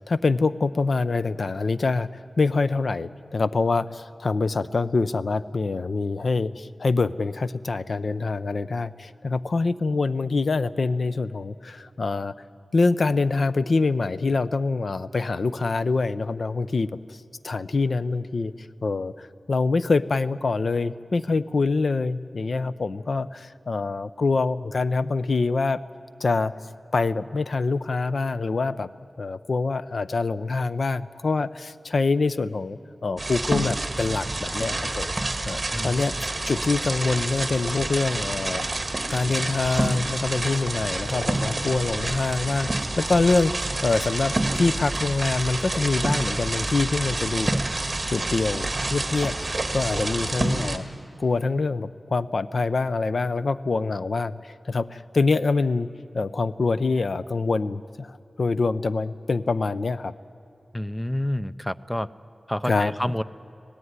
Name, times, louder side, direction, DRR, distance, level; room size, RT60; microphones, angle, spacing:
voice 1, 0.0-12.3 12.7-18.5 18.8-25.8 26.2-26.5 26.9-28.9 29.2-35.1 35.4-36.2 36.5-38.8 39.1-47.6 48.1-49.4 49.7-50.9 51.2-55.9 56.1-60.1 62.7-62.9, left 3 dB, 65° left, 14 dB, 0.6 m, -25 dB
sound 1, 33.2-50.8, right 2 dB, 30° right, 1.8 m, -28 dB
voice 2, 35.7-36.0 60.7-62.1 62.5-63.2, left 1 dB, 10° left, 14 dB, 0.6 m, -28 dB
25.5 x 17.5 x 9.6 m, 2.8 s
wide cardioid pair, 100°, 0 cm